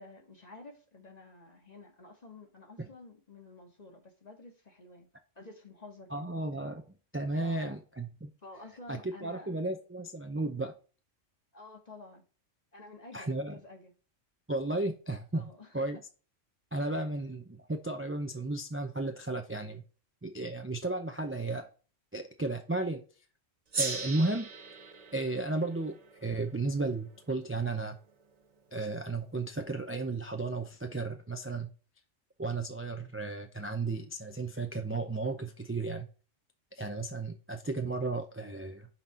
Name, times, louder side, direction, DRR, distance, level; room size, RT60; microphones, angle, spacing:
voice 1, 0.0-5.1 5.3-6.3 7.4-7.8 8.4-9.5 11.5-12.2 12.7-13.9 15.3-16.0 16.9-17.0, left 2 dB, 35° left, 1.6 m, -51 dB
voice 2, 6.1-6.8 7.1-8.3 8.9-10.7 13.1-13.6 14.5-16.0 16.7-19.8 20.2-21.7 22.1-23.0 23.8-24.5 25.1-28.0 28.7-31.7 32.4-36.0 36.8-38.9, right 2 dB, 15° right, 0.4 m, -34 dB
Gong, 23.7-28.5, right 3 dB, 35° right, 0.9 m, -40 dB
5.8 x 4.2 x 4.4 m
omnidirectional pair, 1.3 m